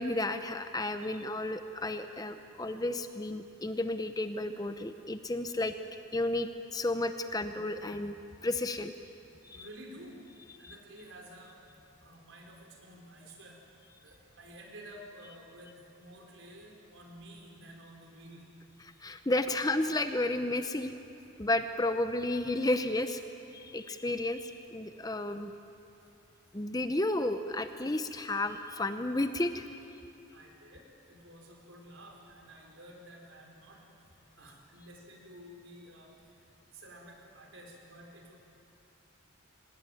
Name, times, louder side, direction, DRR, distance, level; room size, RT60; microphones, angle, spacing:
voice 1, 0.0-5.7 6.1-8.2 8.4-8.9 9.4-9.7 10.6-10.7 19.0-20.9 21.4-23.2 23.5-25.5 26.5-29.7, left 2 dB, 20° left, 9 dB, 0.7 m, -32 dB
voice 2, 9.5-10.2 10.6-11.6 12.0-13.6 14.0-18.4 25.9-26.2 30.3-38.3, right 1 dB, 70° right, 0 dB, 4.9 m, -52 dB
24.5 x 19.5 x 9.3 m, 2.8 s
head